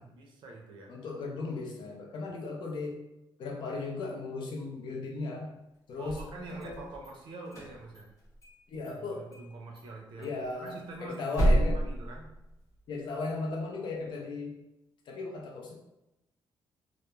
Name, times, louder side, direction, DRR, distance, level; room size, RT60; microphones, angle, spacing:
voice 1, 0.0-0.9 6.0-8.1 8.9-10.3 10.6-11.4 11.7-12.3, right 2 dB, 70° right, 0 dB, 0.5 m, -45 dB
voice 2, 0.9-3.0 3.4-5.5 5.9-6.2 6.5-6.9 8.7-9.3 10.2-11.8 12.9-14.6 15.1-15.8, left 3 dB, 65° left, -1 dB, 0.5 m, -36 dB
sound 1, 5.9-7.1 7.4-8.6 8.8-8.9 9.3-9.5 9.7-9.8 10.2-12.8, right 1 dB, 40° left, 0.8 m, -30 dB
2.3 x 2.0 x 2.9 m, 0.94 s
wide cardioid pair, 180°, 8 cm